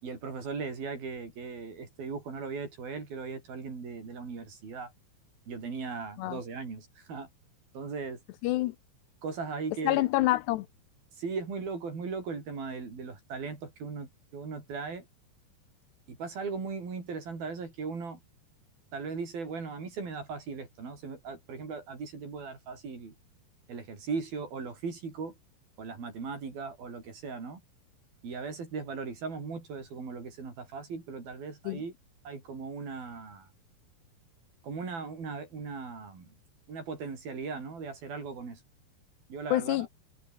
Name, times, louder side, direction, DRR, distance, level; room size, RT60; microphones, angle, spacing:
voice 1, 0.0-4.9 5.5-7.3 7.7-8.2 9.2-10.1 11.2-15.1 16.1-18.2 18.9-23.1 23.7-25.4 25.8-27.6 28.2-31.9 32.2-33.5 34.6-36.4 36.7-38.6 39.3-39.9, right 4 dB, 55° right, 7.8 m, -38 dB
voice 2, 8.4-8.8 9.8-10.7 31.7-31.8 39.5-39.9, left 17 dB, 80° left, 2.8 m, -27 dB
omnidirectional pair, 5.0 m